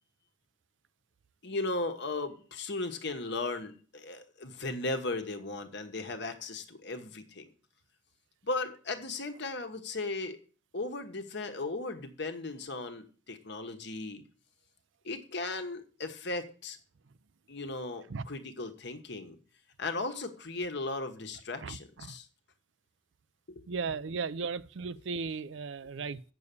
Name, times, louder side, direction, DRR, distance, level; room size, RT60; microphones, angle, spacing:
voice 1, 1.4-7.5 8.4-10.4 10.7-14.2 15.0-16.8 17.5-19.4 19.8-22.3 23.5-23.6, left 2 dB, 60° left, 1.3 m, -36 dB
voice 2, 21.6-22.2 23.7-26.2, right 5 dB, 65° right, 0.5 m, -36 dB
8.2 x 6.8 x 6.8 m
head